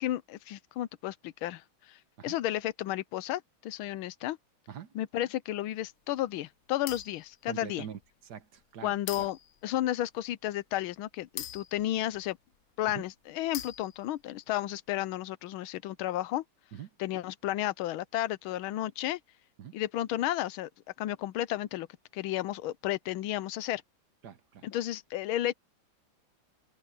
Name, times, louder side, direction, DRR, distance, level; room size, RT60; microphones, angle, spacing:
voice 1, 0.0-4.4 4.9-7.9 8.8-12.4 12.8-16.4 17.0-19.2 19.7-20.7 21.0-21.9 22.1-23.8 24.6-25.5, left 14 dB, 90° left, 1.5 m, -33 dB
sound 1, 6.9-7.3 8.0-8.1 9.1-9.6 11.4-12.5 13.5-14.2, left 10 dB, 65° left, 0.8 m, -42 dB
voice 2, 7.5-9.3 12.9-13.0 16.7-16.9 19.6-19.7 24.2-24.7, right 9 dB, 60° right, 1.5 m, -44 dB
open air
omnidirectional pair, 2.2 m